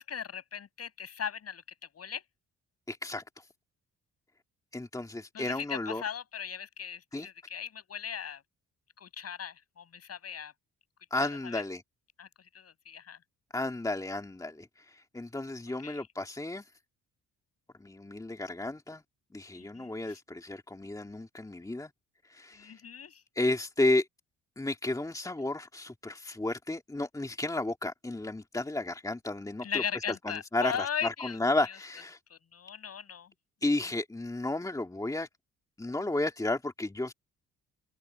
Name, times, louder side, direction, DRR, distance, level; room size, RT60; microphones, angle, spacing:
voice 1, 0.0-1.6 1.9-2.2 5.3-8.4 9.0-10.5 11.2-11.6 12.2-12.3 12.5-13.2 15.8-16.1 19.5-20.2 22.6-23.2 29.6-31.4 32.3-33.3, left 7 dB, 55° left, 7.8 m, -38 dB
voice 2, 2.9-3.4 4.7-6.0 7.1-7.3 11.1-11.8 13.5-16.6 17.8-19.0 19.3-21.9 22.3-22.8 23.4-24.1 24.6-32.2 33.6-35.3 35.8-37.1, left 2 dB, 10° left, 2.3 m, -33 dB
cardioid pair, 90°, 30 cm